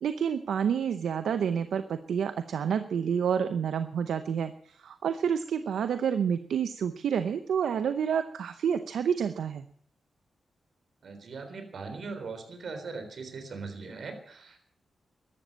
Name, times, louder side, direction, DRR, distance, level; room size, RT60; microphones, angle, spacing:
voice 1, 0.0-9.6, right 7 dB, 85° right, 10 dB, 0.7 m, -29 dB
voice 2, 11.0-14.6, right 4 dB, 65° right, 7 dB, 3.7 m, -40 dB
13.5 x 12.0 x 8.7 m, 0.67 s
cardioid pair, 70°, 0 cm